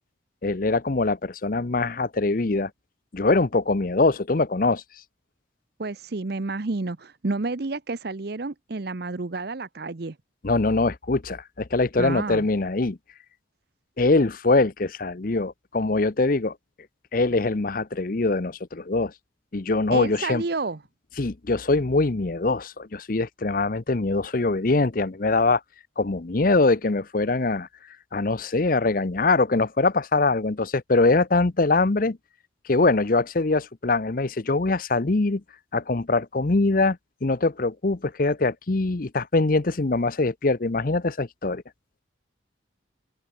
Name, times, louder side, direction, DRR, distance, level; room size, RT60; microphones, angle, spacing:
voice 1, 0.4-2.7 3.1-4.8 10.4-13.0 14.0-16.5 17.1-19.1 19.5-20.4 21.2-25.6 26.0-27.7 28.1-32.2 32.7-35.4 35.7-41.6, left 3 dB, 45° left, 0.7 m, -23 dB
voice 2, 5.8-10.2 12.0-12.5 19.9-20.8, right 3 dB, 55° right, 0.8 m, -30 dB
open air
head